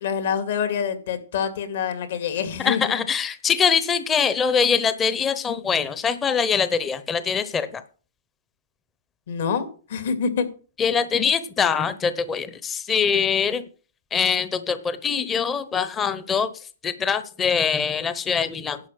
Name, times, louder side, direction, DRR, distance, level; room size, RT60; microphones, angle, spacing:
voice 1, 0.0-2.8 9.3-10.4, left 7 dB, 65° left, 9 dB, 2.3 m, -26 dB
voice 2, 2.6-7.8 10.8-13.6 14.1-16.5 16.8-18.8, left 6 dB, 15° left, 13 dB, 0.8 m, -23 dB
11.5 x 5.1 x 7.7 m, 0.38 s
hypercardioid pair, 150°, 0 cm